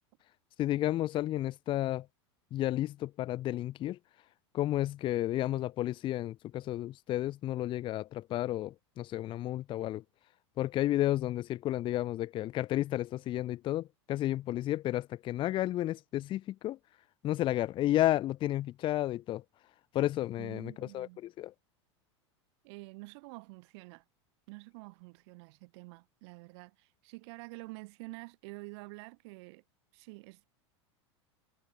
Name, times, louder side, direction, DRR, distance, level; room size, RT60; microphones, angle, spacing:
voice 1, 0.6-2.1 2.5-4.0 4.5-10.0 10.6-16.8 17.2-19.4 19.9-21.1 21.4-21.5, left 14 dB, 35° left, 0.4 m, -32 dB
voice 2, 20.4-21.2 22.6-24.0 24.5-29.6 29.9-30.5, right 28 dB, 65° right, 1.6 m, -48 dB
hypercardioid pair, 100°, 15 cm